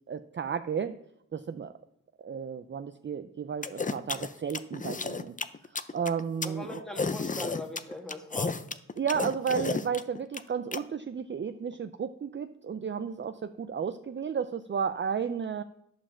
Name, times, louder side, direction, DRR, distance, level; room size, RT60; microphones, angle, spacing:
voice 1, 0.1-1.0 1.3-1.7 2.2-5.3 5.9-6.8 9.0-15.6, right 7 dB, 35° right, 10 dB, 0.4 m, -33 dB
sound 1, 3.6-10.8, left 4 dB, 25° left, 0.5 m, -32 dB
voice 2, 6.4-8.6, left 1 dB, ahead, 2 dB, 1.7 m, -40 dB
11.0 x 5.0 x 7.1 m, 0.76 s
wide cardioid pair, 95°, 33 cm